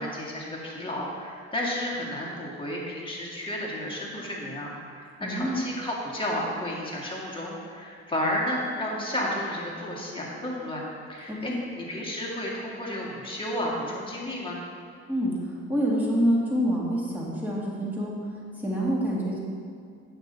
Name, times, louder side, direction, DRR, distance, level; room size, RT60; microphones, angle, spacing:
voice 1, 0.0-10.8 11.1-14.6, left 1 dB, 15° left, -4 dB, 2.3 m, -32 dB
voice 2, 5.2-5.6 11.3-11.6 15.1-18.2 18.6-19.4, equal, 5° right, -6 dB, 2.1 m, -27 dB
9.1 x 7.1 x 4.1 m, 2.2 s
cardioid pair, 90°, 30 cm